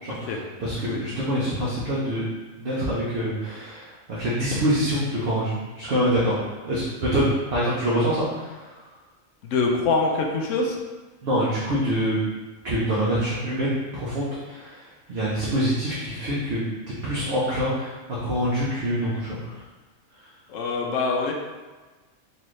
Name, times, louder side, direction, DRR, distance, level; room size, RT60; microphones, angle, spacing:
voice 1, 0.0-2.2 2.6-6.8 7.1-8.9 11.2-12.2 12.6-16.6 17.0-19.6 20.1-20.3, equal, 55° right, -8 dB, 0.9 m, -26 dB
voice 2, 9.4-10.8 20.5-21.3, left 3 dB, 70° left, 1 dB, 0.9 m, -24 dB
4.2 x 2.7 x 3.1 m, 1.3 s
omnidirectional pair, 1.4 m